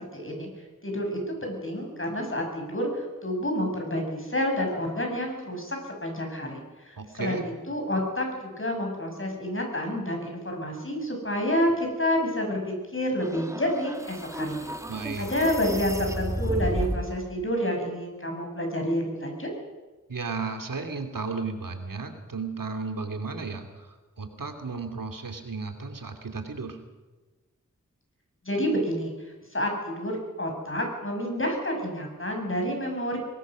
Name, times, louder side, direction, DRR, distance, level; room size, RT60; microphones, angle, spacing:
voice 1, 0.1-0.5 0.8-7.4 7.7-14.7 15.2-19.5 28.4-29.1 29.5-33.2, equal, 40° left, 2 dB, 7.4 m, -29 dB
voice 2, 7.0-7.5 14.9-15.3 20.1-26.8, right 4 dB, 90° right, 5 dB, 2.6 m, -34 dB
sound 1, 13.2-17.2, equal, 10° right, 2.0 m, -32 dB
23.0 x 20.0 x 6.4 m, 1.2 s
wide cardioid pair, 50°, 32 cm